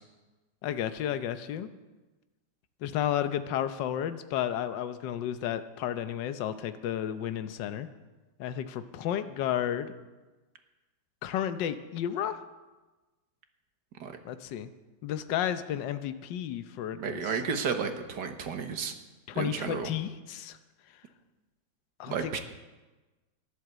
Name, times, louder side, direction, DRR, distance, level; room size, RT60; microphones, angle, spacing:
voice 1, 0.6-1.7 2.8-7.9 8.4-9.9 11.2-12.4 14.2-14.7 15.0-17.3 19.3-20.6 22.0-22.4, left 10 dB, 75° left, 10 dB, 1.5 m, -32 dB
voice 2, 16.9-18.9 19.3-19.9 22.1-22.4, right 6 dB, 65° right, 7 dB, 1.8 m, -32 dB
13.5 x 11.0 x 8.0 m, 1.2 s
omnidirectional pair, 2.0 m